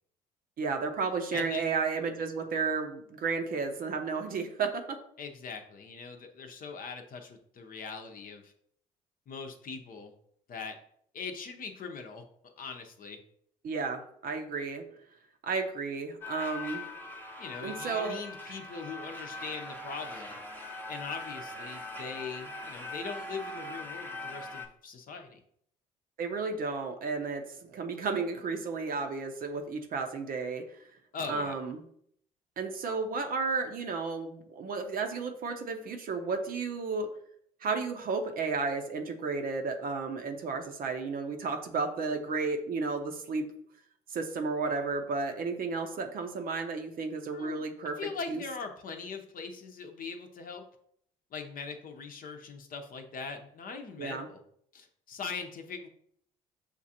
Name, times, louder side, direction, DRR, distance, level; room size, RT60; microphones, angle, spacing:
voice 1, 0.6-5.0 13.6-14.8 15.4-16.8 17.6-18.2 26.2-30.8 31.3-31.9 32.6-37.1 37.6-43.5 44.1-48.0 48.3-48.4 54.0-54.3, right 4 dB, 50° right, 5 dB, 0.7 m, -33 dB
voice 2, 1.3-1.6 5.2-8.5 9.3-10.1 10.5-10.8 11.1-12.2 12.6-13.2 17.4-20.4 20.9-25.4 31.1-31.6 47.3-47.6 48.0-50.6 51.3-54.4 54.7-55.9, left 5 dB, 50° left, 5 dB, 0.7 m, -41 dB
sound 1, 16.2-24.7, left 2 dB, 10° left, 0.8 m, -41 dB
6.5 x 2.4 x 2.8 m, 0.67 s
hypercardioid pair, 55°, 19 cm